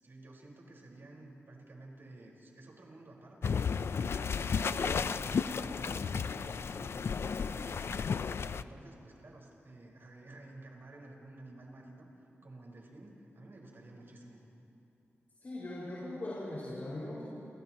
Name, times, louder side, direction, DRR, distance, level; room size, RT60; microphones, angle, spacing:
voice 1, 0.0-8.1 8.5-12.1 12.4-14.5, right 2 dB, 55° right, -1 dB, 4.8 m, -52 dB
sound 1, 3.4-8.6, left 6 dB, 65° left, 0.5 m, -33 dB
voice 2, 15.4-17.2, left 1 dB, 45° left, -7 dB, 5.7 m, -40 dB
29.5 x 29.5 x 3.0 m, 2.8 s
wide cardioid pair, 95°, 5 cm